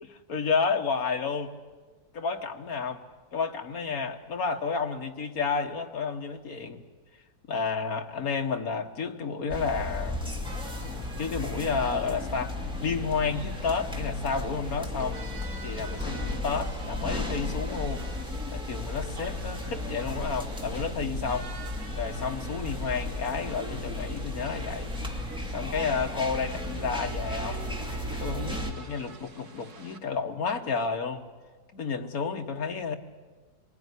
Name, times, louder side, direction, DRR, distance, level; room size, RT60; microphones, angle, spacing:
voice 1, 0.3-1.5 2.1-3.0 3.3-6.8 7.5-10.2 11.2-12.6 12.8-15.2 15.6-18.1 18.5-21.5 22.0-24.9 25.5-27.6 28.1-31.2 31.7-33.0, left 5 dB, 65° left, 5 dB, 1.9 m, -31 dB
sound 1, 9.5-28.7, left 1 dB, 5° right, 2.5 m, -34 dB
sound 2, 10.4-30.0, right 3 dB, 70° right, 2.5 m, -49 dB
25.0 x 20.0 x 9.8 m, 1.4 s
omnidirectional pair, 1.7 m